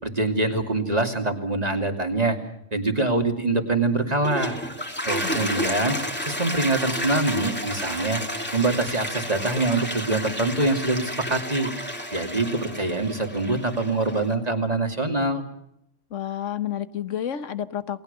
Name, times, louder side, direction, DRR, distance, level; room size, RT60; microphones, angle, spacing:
voice 1, 0.0-2.4 2.7-4.6 5.1-6.0 6.2-8.2 8.5-11.7 12.1-15.4, right 2 dB, 35° right, 2.9 m, -24 dB
Toilet flush, 4.0-14.3, equal, 10° left, 2.6 m, -31 dB
voice 2, 5.2-5.7 16.1-18.0, left 10 dB, 85° left, 1.5 m, -30 dB
29.0 x 20.5 x 6.9 m
omnidirectional pair, 1.2 m